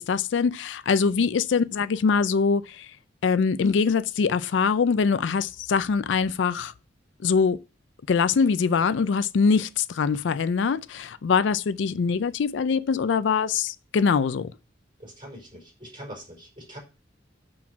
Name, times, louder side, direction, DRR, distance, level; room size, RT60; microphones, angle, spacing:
voice 1, 0.0-2.9 3.2-6.7 7.2-7.6 8.1-14.5, left 5 dB, 70° left, 0.4 m, -23 dB
voice 2, 15.0-16.8, equal, 25° right, 4.3 m, -43 dB
6.2 x 6.1 x 5.8 m
head